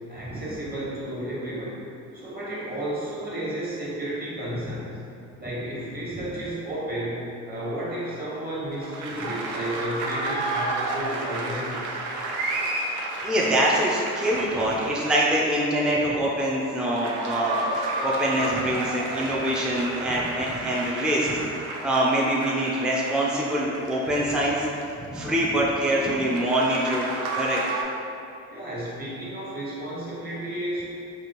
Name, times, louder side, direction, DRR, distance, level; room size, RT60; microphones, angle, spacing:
voice 1, 0.1-1.8 2.1-4.9 5.4-12.1 28.5-30.8, right 1 dB, 30° right, -7 dB, 1.3 m, -32 dB
sound 1, 8.8-15.4 16.7-25.1 26.3-27.8, right 2 dB, 90° right, 0.5 m, -32 dB
voice 2, 13.2-24.7 25.1-27.1 27.4-27.6, right 1 dB, 5° right, -4 dB, 0.5 m, -24 dB
4.1 x 2.9 x 3.0 m, 2.6 s
cardioid pair, 90°, 30 cm